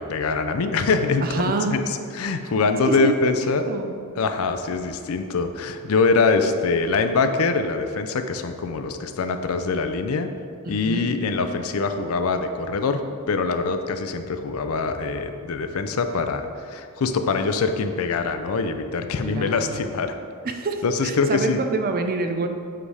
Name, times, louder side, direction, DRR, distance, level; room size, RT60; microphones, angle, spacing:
voice 1, 0.0-1.4 1.7-1.8 2.1-3.7 4.2-10.3 10.7-13.0 13.3-20.2 20.8-21.6, left 4 dB, 70° left, 8 dB, 0.4 m, -23 dB
voice 2, 1.2-1.7 2.9-3.3 3.7-3.9 10.6-11.1 19.2-19.9 20.4-22.5, right 3 dB, 40° right, 6 dB, 0.5 m, -27 dB
7.6 x 3.4 x 4.7 m, 2.4 s
head